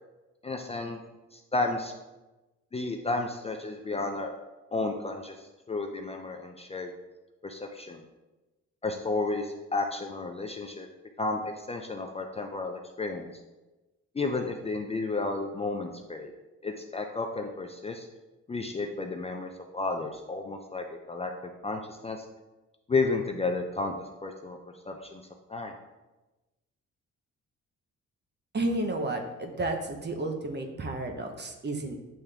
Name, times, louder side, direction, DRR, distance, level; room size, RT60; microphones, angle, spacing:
voice 1, 0.4-1.0 1.3-1.9 2.7-4.3 4.7-6.9 7.4-8.0 8.8-10.9 11.2-13.3 14.1-16.3 16.6-18.1 18.5-21.3 21.6-22.2 22.9-24.6 24.9-25.2 25.5-25.7, left 3 dB, 20° left, 3 dB, 0.5 m, -32 dB
voice 2, 28.5-31.9, right 2 dB, 35° right, 4 dB, 0.9 m, -32 dB
8.5 x 3.5 x 3.3 m, 1.1 s
cardioid pair, 90°, 30 cm